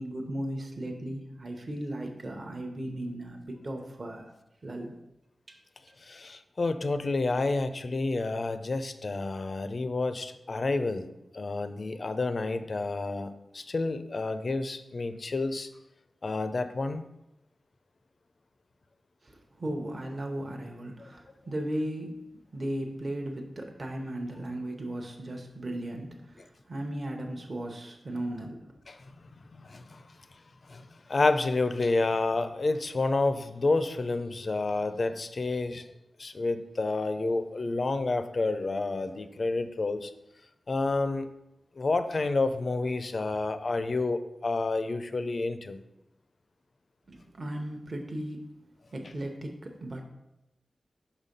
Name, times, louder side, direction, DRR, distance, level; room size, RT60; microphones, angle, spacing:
voice 1, 0.0-4.3 4.6-4.9 5.5-5.6 19.2-22.2 22.5-28.7 47.1-48.5 48.9-50.0, right 1 dB, 45° right, 3 dB, 0.8 m, -36 dB
voice 2, 6.1-15.7 16.2-17.0 28.9-29.0 29.5-30.0 30.7-30.8 31.1-35.8 36.2-40.1 40.7-41.3 41.8-45.8, left 3 dB, 50° left, 10 dB, 0.4 m, -29 dB
5.7 x 4.1 x 5.2 m, 0.90 s
wide cardioid pair, 90°, 0 cm